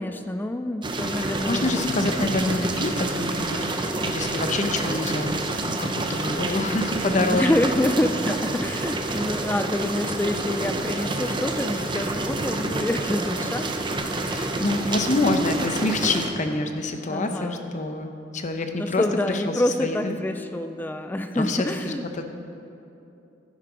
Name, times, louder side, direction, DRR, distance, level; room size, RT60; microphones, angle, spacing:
voice 1, 0.0-2.2 7.1-13.8 17.1-17.7 18.8-22.1, left 1 dB, 10° left, 8 dB, 0.3 m, -27 dB
sound 1, 0.8-16.3, right 2 dB, 25° right, 0.8 m, -28 dB
voice 2, 1.2-3.6 4.0-7.6 9.1-9.3 14.1-19.5 19.8-20.2 21.3-22.2, left 2 dB, 40° left, 6 dB, 0.8 m, -27 dB
11.0 x 10.5 x 5.0 m, 2.8 s
head